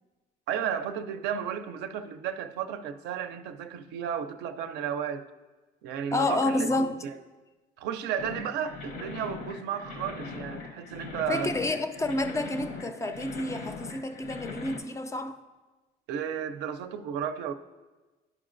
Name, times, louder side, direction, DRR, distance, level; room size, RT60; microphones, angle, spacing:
voice 1, 0.5-5.2 5.8-7.2 7.8-11.5 16.1-17.5, right 8 dB, 85° right, 0.4 m, -33 dB
voice 2, 6.1-7.0 11.3-15.4, left 2 dB, 20° left, 0.3 m, -29 dB
sound 1, 8.2-14.8, left 4 dB, 75° left, 0.8 m, -40 dB
11.0 x 4.9 x 2.5 m
cardioid pair, 110°, 17 cm